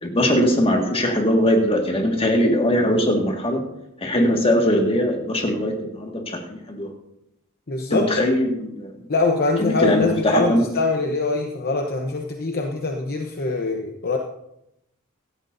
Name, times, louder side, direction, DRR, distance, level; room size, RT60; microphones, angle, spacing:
voice 1, 0.0-3.6 4.0-6.9 7.9-9.1 9.6-10.7, equal, 25° left, 2 dB, 1.8 m, -21 dB
voice 2, 7.7-8.2 9.1-14.2, left 3 dB, 45° left, 2 dB, 0.9 m, -23 dB
16.5 x 12.5 x 2.7 m, 0.82 s
head